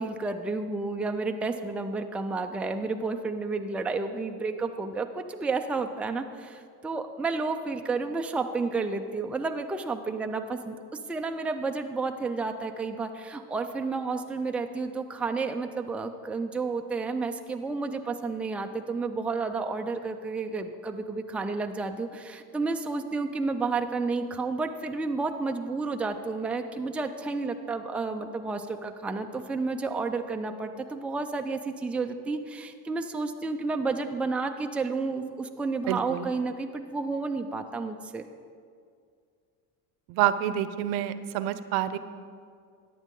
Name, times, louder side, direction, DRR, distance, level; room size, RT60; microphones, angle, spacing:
voice 1, 0.0-10.8 11.1-38.3, right 3 dB, 5° right, 5 dB, 0.4 m, -31 dB
voice 2, 35.9-36.3 40.1-42.0, right 12 dB, 75° right, 13 dB, 0.7 m, -27 dB
14.0 x 9.3 x 3.8 m, 2.2 s
supercardioid pair, 110°, 38 cm